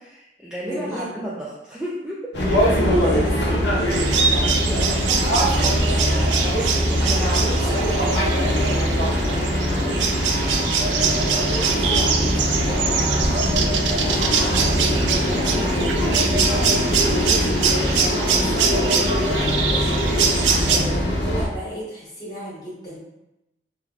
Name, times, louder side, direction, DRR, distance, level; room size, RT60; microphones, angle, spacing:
voice 1, 0.0-2.4 5.5-5.7 6.0-10.1, equal, 5° right, -8 dB, 0.4 m, -35 dB
voice 2, 0.6-1.2 2.8-5.1 5.4-9.1 11.2-13.2 13.9-16.7 17.0-19.3 19.6-20.4 20.6-23.0, equal, 20° left, -8 dB, 1.1 m, -33 dB
sound 1, 2.3-21.4, equal, 75° left, 0.7 m, -22 dB
sound 2, 3.9-20.8, right 6 dB, 80° right, 0.3 m, -24 dB
3.3 x 2.5 x 2.4 m, 0.91 s
head